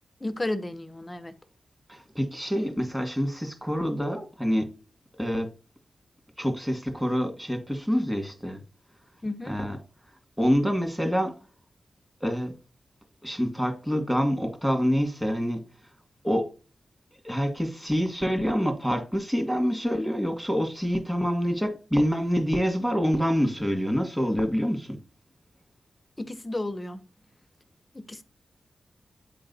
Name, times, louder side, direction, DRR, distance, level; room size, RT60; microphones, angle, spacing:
voice 1, 0.2-1.3 9.2-9.6 26.2-27.0 27.9-28.2, left 2 dB, 25° left, 0.9 m, -33 dB
voice 2, 1.9-4.7 5.2-5.5 6.4-8.6 9.5-9.8 10.4-11.3 12.2-12.5 13.2-15.6 16.2-16.5 17.2-25.0, equal, 5° right, 2.4 m, -26 dB
8.9 x 3.9 x 4.1 m
cardioid pair, 55°, 0 cm